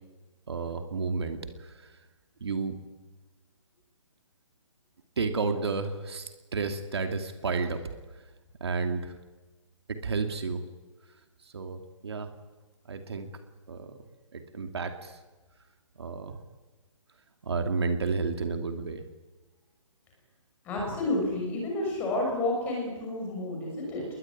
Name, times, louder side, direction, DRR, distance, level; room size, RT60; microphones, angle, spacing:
voice 1, 0.5-1.9 2.4-2.8 5.2-7.8 8.6-9.1 9.9-10.6 11.4-12.3 12.9-13.3 13.7-14.0 14.3-15.2 16.0-16.4 17.4-19.0, right 4 dB, 55° right, 6 dB, 2.6 m, -31 dB
voice 2, 20.6-24.1, left 2 dB, 10° left, -1 dB, 6.2 m, -30 dB
28.0 x 21.0 x 9.8 m, 1.2 s
hypercardioid pair, 175°, 16 cm